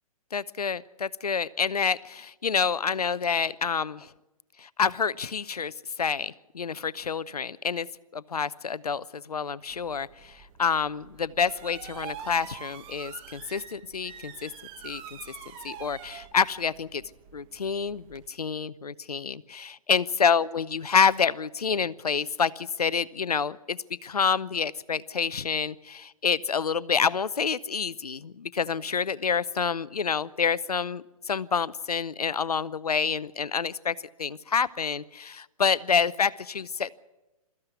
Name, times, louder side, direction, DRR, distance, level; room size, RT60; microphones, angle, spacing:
voice 1, 0.3-4.1 4.6-7.9 8.1-14.5 14.8-15.2 15.6-17.0 17.3-36.9, left 6 dB, 90° left, 19 dB, 0.7 m, -28 dB
sound 1, 9.7-18.3, right 8 dB, 25° right, 1.4 m, -45 dB
23.0 x 14.5 x 8.1 m, 1.1 s
hypercardioid pair, 135°, 19 cm